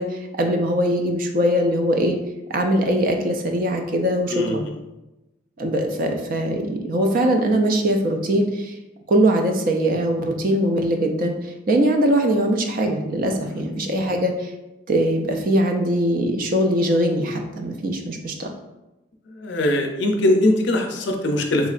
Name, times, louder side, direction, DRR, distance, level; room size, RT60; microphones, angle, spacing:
voice 1, 0.0-2.2 2.5-4.7 5.6-8.7 9.1-14.5 14.9-18.5, right 1 dB, 45° right, 3 dB, 0.4 m, -21 dB
voice 2, 4.3-4.7 13.4-13.6 19.4-21.7, left 1 dB, 60° left, 3 dB, 0.5 m, -21 dB
3.6 x 3.0 x 2.4 m, 0.99 s
head